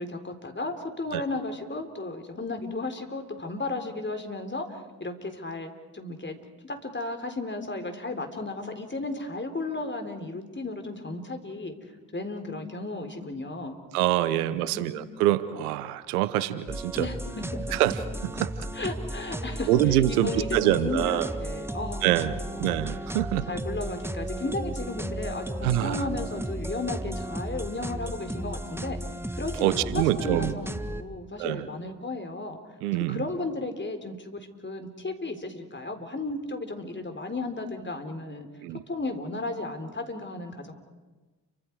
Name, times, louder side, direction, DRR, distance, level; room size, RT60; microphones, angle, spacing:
voice 1, 0.0-6.4 6.6-11.7 12.1-13.8 14.4-14.9 17.0-17.6 18.7-19.7 20.1-22.1 22.5-22.6 23.5-29.0 29.4-32.6 33.1-38.5 38.9-40.7, left 2 dB, 25° left, 5 dB, 4.1 m, -34 dB
voice 2, 13.9-17.1 17.7-18.0 18.2-18.7 19.7-21.3 22.0-23.5 25.6-26.1 29.6-30.6 31.4-31.7 32.8-33.3 38.6-38.8, right 13 dB, 85° right, 15 dB, 0.9 m, -25 dB
sound 1, 16.7-31.0, right 1 dB, 5° right, 1.6 m, -34 dB
30.0 x 25.5 x 4.8 m, 1.2 s
hypercardioid pair, 40°, 43 cm